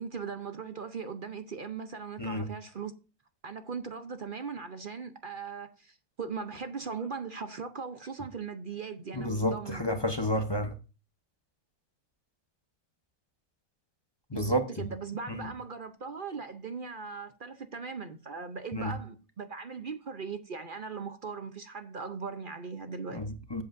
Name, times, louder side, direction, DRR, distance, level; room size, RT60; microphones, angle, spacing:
voice 1, 0.0-2.9 3.4-9.8 14.3-23.2, right 5 dB, 45° right, 0.7 m, -39 dB
voice 2, 9.1-10.7 14.3-14.9 15.3-15.5 18.7-18.9 23.1-23.6, equal, 25° left, 0.6 m, -30 dB
15.0 x 7.9 x 2.6 m
omnidirectional pair, 1.6 m